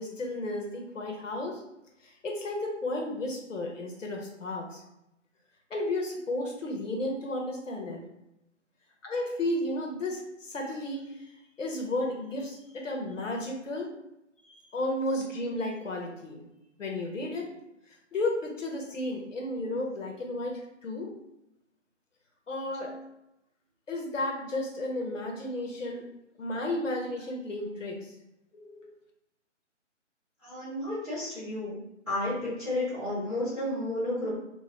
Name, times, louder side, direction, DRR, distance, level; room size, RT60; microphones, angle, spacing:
voice 1, 0.0-1.6 2.0-4.8 5.7-8.0 9.0-13.9 14.5-16.4 16.8-17.5 18.1-21.1 22.5-22.9 23.9-26.1 26.4-28.1 28.5-28.9, left 1 dB, 85° left, 0 dB, 1.0 m, -33 dB
voice 2, 30.4-31.7 32.1-34.3, left 1 dB, 5° left, -25 dB, 1.0 m, -32 dB
2.9 x 2.3 x 2.8 m, 0.86 s
hypercardioid pair, 170°, 37 cm